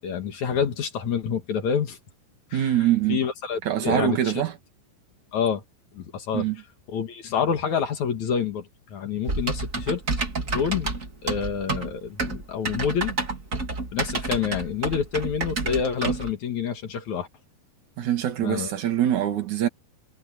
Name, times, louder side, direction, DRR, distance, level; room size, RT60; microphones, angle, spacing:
voice 1, 0.0-2.0 2.5-2.7 3.1-4.2 5.3-5.6 6.0-6.4 6.9-10.0 10.5-10.9 11.2-13.1 13.9-17.3 18.4-18.7, left 7 dB, 55° left, 2.5 m, -27 dB
voice 2, 2.5-3.2 3.6-4.6 6.3-6.6 18.0-19.7, right 11 dB, 50° right, 2.7 m, -24 dB
Typing, 9.3-16.3, right 3 dB, 25° right, 2.1 m, -29 dB
omnidirectional pair, 5.0 m